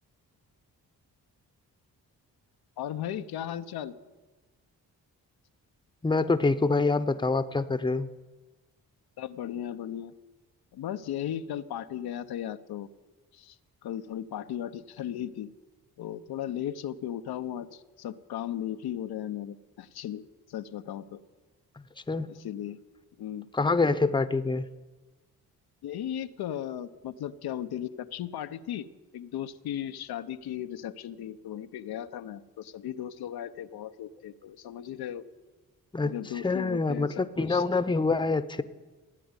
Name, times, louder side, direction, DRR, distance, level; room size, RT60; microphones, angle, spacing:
voice 1, 2.8-3.9 9.2-10.1 10.7-12.9 13.3-13.5 13.8-15.5 16.0-20.2 20.5-21.2 22.3-22.8 23.2-23.5 25.8-28.9 29.1-35.2 36.1-37.6, left 10 dB, 85° left, 9 dB, 0.8 m, -36 dB
voice 2, 6.0-8.1 22.1-22.3 23.5-24.7 35.9-36.1 36.4-38.6, left 3 dB, 15° left, 13 dB, 0.8 m, -26 dB
16.0 x 9.3 x 9.6 m, 1.2 s
cardioid pair, 70°, 37 cm